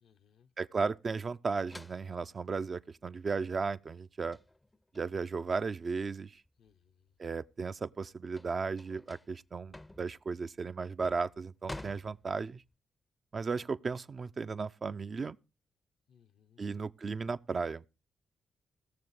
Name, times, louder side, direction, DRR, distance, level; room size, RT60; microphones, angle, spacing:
voice 1, 0.0-0.5 6.6-7.1 16.1-16.6, left 8 dB, 75° left, 0.7 m, -65 dB
voice 2, 0.6-4.4 4.9-6.4 7.2-12.6 13.3-15.4 16.6-17.8, right 4 dB, 50° right, 0.5 m, -35 dB
sound 1, 1.7-6.7 7.1-12.7, left 1 dB, 15° left, 0.5 m, -51 dB
17.5 x 6.9 x 4.8 m
supercardioid pair, 45°, 0 cm